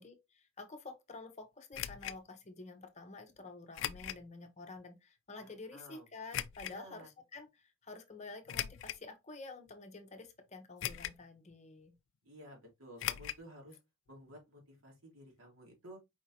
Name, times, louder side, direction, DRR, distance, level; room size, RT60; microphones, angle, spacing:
voice 1, 0.0-12.0, left 3 dB, 30° left, 0.7 m, -50 dB
sound 1, 1.7-2.2 3.7-4.2 4.8-4.9 6.3-6.8 8.5-9.1 9.7-9.8 10.8-11.3 11.5-11.6 13.0-13.4 13.7-13.8 14.1-14.2, left 11 dB, 60° left, 0.3 m, -39 dB
voice 2, 5.4-6.0 6.6-7.1 12.2-13.8 14.1-16.0, equal, 75° right, 2.0 m, -54 dB
4.9 x 3.5 x 2.8 m
head